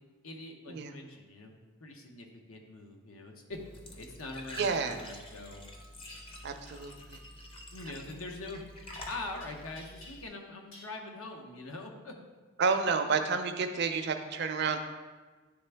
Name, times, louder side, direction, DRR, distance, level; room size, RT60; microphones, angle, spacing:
voice 1, 0.2-3.6 4.0-5.6 7.7-8.6 9.1-12.1, left 2 dB, 85° left, 2 dB, 0.9 m, -43 dB
Glass / Trickle dribble / Fill (with liquid), 3.5-10.3, left 1 dB, 25° left, 0.5 m, -48 dB
voice 2, 4.6-5.0 6.4-7.2 12.6-14.8, right 5 dB, 50° right, 7 dB, 0.5 m, -30 dB
sound 1, 6.0-6.2 8.9-9.5 9.8-10.4 10.7-10.9, left 1 dB, 60° left, 1.5 m, -51 dB
9.5 x 3.4 x 3.4 m, 1.3 s
head